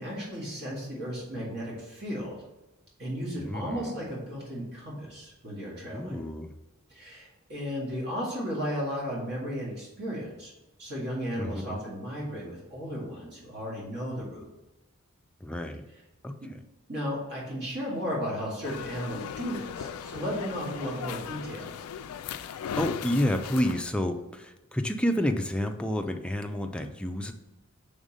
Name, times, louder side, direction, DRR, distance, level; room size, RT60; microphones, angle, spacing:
voice 1, 0.0-2.4 3.0-6.2 6.9-10.5 10.8-14.5 16.4-16.5 16.9-21.9, equal, 50° right, -4 dB, 2.0 m, -34 dB
voice 2, 3.4-3.9 5.9-6.5 11.4-11.8 15.4-15.8 16.2-16.3 22.7-27.3, equal, 5° left, 5 dB, 0.4 m, -29 dB
sound 1, 18.6-23.8, left 8 dB, 85° left, 0.3 m, -38 dB
5.3 x 3.6 x 5.0 m, 1.0 s
head